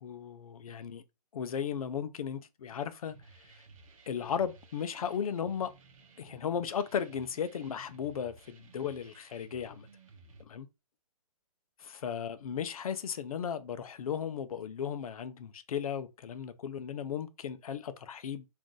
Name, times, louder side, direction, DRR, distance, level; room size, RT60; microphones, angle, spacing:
voice 1, 0.0-1.0 1.3-3.2 4.1-5.7 6.2-9.9 10.4-10.7 11.8-18.4, left 8 dB, 65° left, 0.5 m, -36 dB
sound 1, 3.1-10.4, right 3 dB, 55° right, 0.8 m, -57 dB
2.5 x 2.3 x 3.8 m
hypercardioid pair, 135°, 20 cm